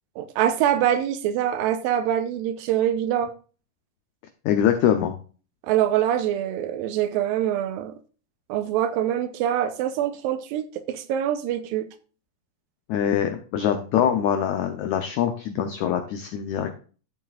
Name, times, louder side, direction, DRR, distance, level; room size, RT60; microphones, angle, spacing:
voice 1, 0.2-3.3 5.6-7.9 8.5-11.9, right 10 dB, 80° right, 2.4 m, -24 dB
voice 2, 4.4-5.2 12.9-16.7, left 9 dB, 90° left, 1.6 m, -23 dB
13.0 x 7.4 x 2.4 m
omnidirectional pair, 4.2 m